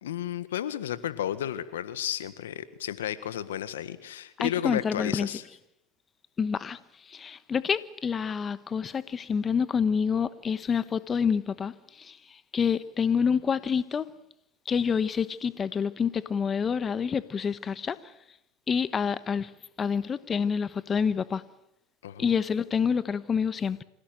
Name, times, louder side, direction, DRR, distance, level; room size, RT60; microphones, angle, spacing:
voice 1, 0.0-5.4 22.0-22.3, left 11 dB, 90° left, 1.6 m, -33 dB
voice 2, 4.4-5.3 6.4-6.8 7.1-12.2 12.5-14.1 14.7-18.0 18.7-19.5 19.8-21.4 22.2-23.8, left 6 dB, 30° left, 1.2 m, -27 dB
27.0 x 17.0 x 9.3 m
hypercardioid pair, 95°, 0 cm